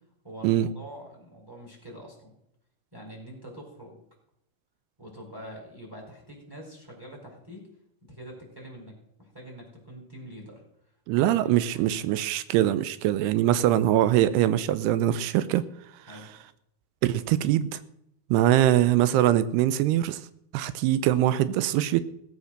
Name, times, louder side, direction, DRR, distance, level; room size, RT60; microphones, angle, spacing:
voice 1, 0.2-2.3 2.9-4.0 5.0-7.7 8.1-10.6 11.2-12.0 13.3-13.7 16.1-16.3, equal, 5° right, -2 dB, 4.7 m, -45 dB
voice 2, 11.1-15.6 17.0-17.8 18.3-20.2 20.5-22.0, right 13 dB, 90° right, 14 dB, 2.8 m, -23 dB
17.5 x 8.0 x 6.5 m, 0.75 s
omnidirectional pair, 4.6 m